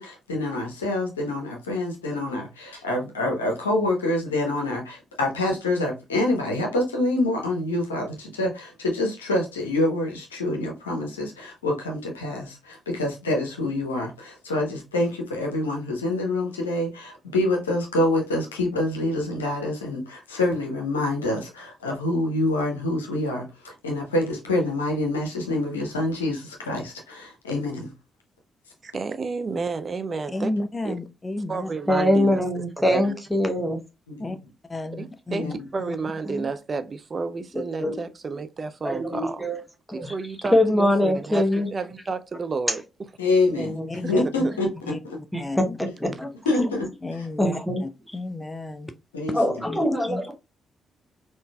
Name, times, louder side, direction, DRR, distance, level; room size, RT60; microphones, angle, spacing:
voice 1, 0.0-27.9 34.1-34.4 35.3-35.5 43.2-43.8 44.1-44.7 45.0-45.2 46.4-46.9 49.1-49.4, left 2 dB, 85° left, 0.7 m, -26 dB
voice 2, 28.8-30.5 30.8-30.9 31.5-33.1 35.0-39.6 39.9-42.8 44.0-44.1 44.4-44.5, right 4 dB, 40° right, 0.4 m, -31 dB
voice 3, 30.3-31.7 34.2-34.4 34.7-35.5 35.8-35.9 36.3-36.5 43.9-44.2 44.9-45.0 45.4-45.8 47.0-47.5 47.8-48.9 49.3-50.3, left 2 dB, 25° left, 0.5 m, -32 dB
voice 4, 31.9-33.8 37.5-38.0 38.8-39.6 39.9-40.1 40.5-41.7 43.6-43.9 45.3-45.4 46.0-46.3 46.6-46.7 47.4-47.8 49.3-50.3, left 1 dB, ahead, 0.9 m, -23 dB
3.7 x 2.6 x 2.2 m
figure-of-eight pair, 40°, 0 cm